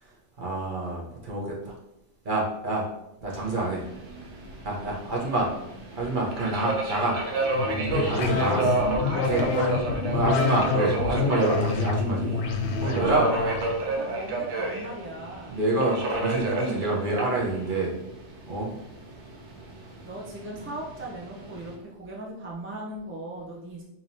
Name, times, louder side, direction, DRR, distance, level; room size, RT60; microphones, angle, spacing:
voice 1, 0.0-1.8 2.2-2.9 3.2-3.8 4.6-5.5 5.9-7.2 7.9-8.7 9.3-9.5 10.1-12.4 12.8-13.2 15.5-17.9 18.5-18.7, right 2 dB, 45° right, -3 dB, 1.0 m, -27 dB
Subway metro underground, 3.3-21.7, right 2 dB, 75° right, 1.0 m, -31 dB
sound 1, 7.4-13.8, left 4 dB, 75° left, 0.8 m, -28 dB
voice 2, 8.1-9.7 12.8-13.6 13.9-15.6 20.0-23.8, right 1 dB, 15° right, -3 dB, 0.4 m, -38 dB
4.8 x 2.9 x 2.7 m, 0.88 s
omnidirectional pair, 1.2 m